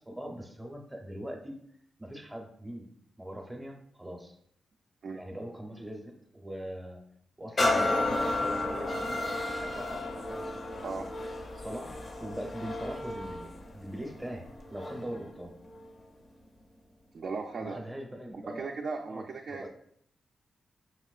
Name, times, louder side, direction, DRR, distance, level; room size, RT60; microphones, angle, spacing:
voice 1, 0.1-1.6 2.0-2.9 3.2-4.3 5.1-7.0 7.4-10.5 11.6-13.5 13.7-15.5 17.6-18.7 19.1-19.3 19.5-19.7, right 1 dB, 10° right, 2 dB, 0.6 m, -41 dB
sound 1, 7.6-15.2 15.7-15.9, left 2 dB, 35° left, 0.5 m, -32 dB
voice 2, 17.1-17.8 18.5-19.7, right 4 dB, 55° right, 1 dB, 0.3 m, -37 dB
5.9 x 2.9 x 2.3 m, 0.66 s
wide cardioid pair, 145°, 0 cm